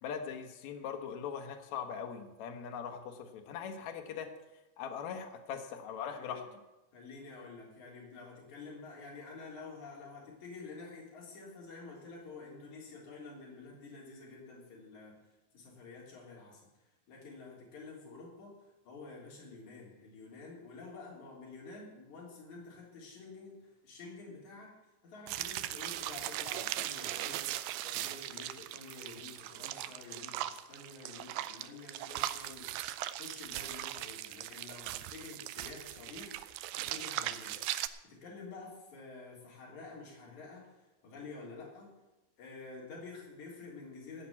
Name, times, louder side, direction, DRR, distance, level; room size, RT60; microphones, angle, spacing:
voice 1, 0.0-4.3 4.8-6.4, left 7 dB, 65° left, 4 dB, 1.8 m, -41 dB
voice 2, 6.0-6.4 6.9-15.2 15.5-16.7 17.1-18.6 18.8-24.8 25.0-27.5 27.8-41.9 42.4-44.3, left 3 dB, 45° left, -4 dB, 4.7 m, -49 dB
sound 1, 25.3-37.9, right 14 dB, 80° right, 2.4 m, -39 dB
15.5 x 5.9 x 8.7 m, 1.0 s
omnidirectional pair, 4.8 m